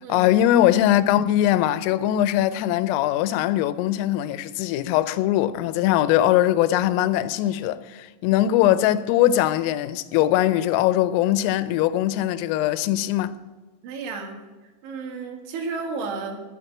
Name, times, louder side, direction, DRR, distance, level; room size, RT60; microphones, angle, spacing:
voice 1, 0.1-13.4, left 13 dB, 85° left, 3.2 m, -21 dB
voice 2, 13.8-14.4 14.8-16.4, right 4 dB, 70° right, 3.9 m, -32 dB
9.9 x 9.1 x 9.6 m
omnidirectional pair, 5.9 m